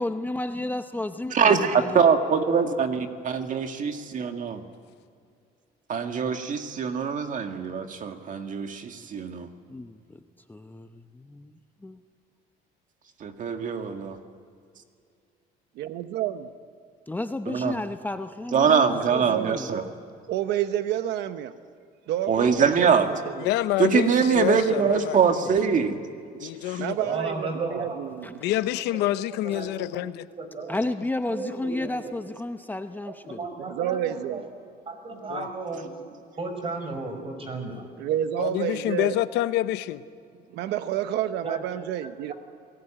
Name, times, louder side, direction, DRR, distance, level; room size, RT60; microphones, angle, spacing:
voice 1, 0.0-2.0 9.7-10.0 10.5-12.0 17.1-19.7 28.2-28.3 30.7-33.4, left 2 dB, 10° left, 8 dB, 0.8 m, -32 dB
voice 2, 1.3-4.6 5.9-9.5 13.2-14.2 17.5-17.8 18.5-19.8 22.3-23.1 23.8-26.0 26.4-26.5, right 6 dB, 50° right, 6 dB, 2.0 m, -23 dB
voice 3, 15.8-16.5 19.0-19.6 20.3-21.5 22.1-23.5 26.8-28.4 33.6-34.4 38.0-39.1 40.5-42.3, right 11 dB, 85° right, 10 dB, 1.0 m, -29 dB
voice 4, 23.4-25.5 26.4-27.0 28.4-30.3 35.3-35.5 38.4-40.0, left 14 dB, 90° left, 13 dB, 0.9 m, -27 dB
voice 5, 27.0-28.0 28.8-30.1 30.4-30.8 31.3-32.1 33.0-34.4 34.9-35.9 36.4-37.9 41.4-41.6 42.0-42.3, right 3 dB, 35° right, 6 dB, 5.8 m, -35 dB
27.5 x 19.0 x 8.9 m, 2.4 s
cardioid pair, 110°, 17 cm